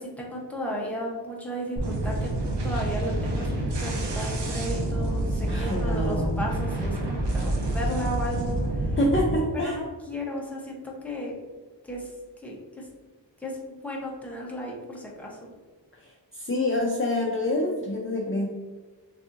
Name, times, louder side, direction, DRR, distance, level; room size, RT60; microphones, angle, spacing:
voice 1, 0.0-2.2 2.6-3.5 3.8-9.0 9.6-11.4 11.8-12.1 12.4-12.9 13.4-15.5, equal, 5° left, -3 dB, 0.9 m, -34 dB
sound 1, 1.8-9.4, right 1 dB, 65° right, 0.8 m, -28 dB
voice 2, 5.5-6.4 9.0-9.8 15.9-18.5, left 1 dB, 30° left, -2 dB, 0.5 m, -27 dB
6.5 x 2.7 x 2.5 m, 1.3 s
wide cardioid pair, 120°, 44 cm